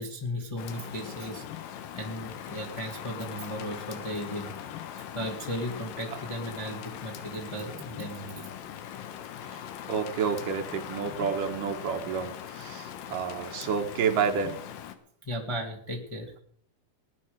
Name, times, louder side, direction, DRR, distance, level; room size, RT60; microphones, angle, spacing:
voice 1, 0.0-4.5 5.1-8.4 15.2-16.3, equal, 15° left, 0 dB, 1.2 m, -36 dB
Rain, 0.6-14.9, left 10 dB, 85° left, 2.8 m, -41 dB
voice 2, 9.9-14.6, right 6 dB, 75° right, 5 dB, 2.8 m, -30 dB
19.5 x 10.0 x 5.0 m, 0.63 s
omnidirectional pair, 3.9 m